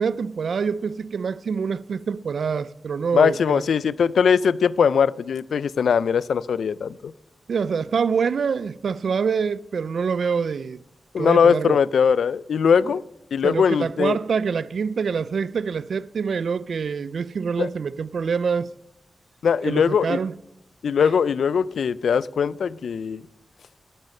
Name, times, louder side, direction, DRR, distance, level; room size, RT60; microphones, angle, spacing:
voice 1, 0.0-3.6 7.5-10.8 11.2-11.8 12.9-13.0 13.4-18.7 19.6-20.3, right 6 dB, 75° right, 0.3 m, -25 dB
voice 2, 3.1-7.1 11.1-13.0 13.3-14.2 17.6-17.7 19.4-20.2 20.8-23.2, left 6 dB, 90° left, 0.3 m, -20 dB
9.5 x 8.9 x 6.4 m
wide cardioid pair, 80°, 0 cm